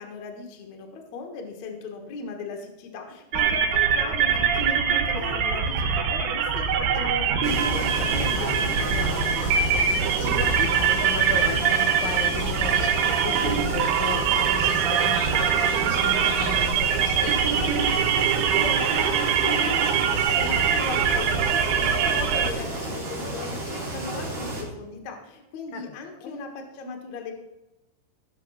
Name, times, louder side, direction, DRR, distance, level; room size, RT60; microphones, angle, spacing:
voice 1, 0.0-9.0 18.5-27.3, left 3 dB, 70° left, 3 dB, 1.7 m, -37 dB
sound 1, 3.3-22.5, right 7 dB, 85° right, 4.0 m, -23 dB
sound 2, 7.4-24.6, right 2 dB, 25° right, 3.7 m, -32 dB
voice 2, 8.7-17.8 25.7-26.4, left 6 dB, 90° left, 6 dB, 2.3 m, -36 dB
17.0 x 6.9 x 5.7 m, 0.98 s
omnidirectional pair, 5.9 m